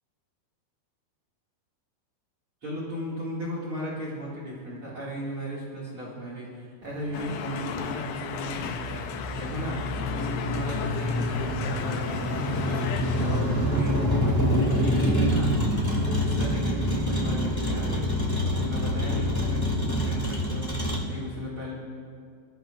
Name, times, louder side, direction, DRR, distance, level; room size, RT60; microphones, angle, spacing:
voice 1, 2.6-15.5 15.9-18.0 18.4-20.7 21.1-21.7, equal, 40° right, -5 dB, 2.5 m, -36 dB
Motor vehicle (road), 6.9-21.0, equal, 20° left, 0.5 m, -27 dB
sound 1, 7.1-13.4, left 7 dB, 80° left, 1.8 m, -35 dB
25.0 x 14.5 x 2.5 m, 2.1 s
omnidirectional pair, 4.5 m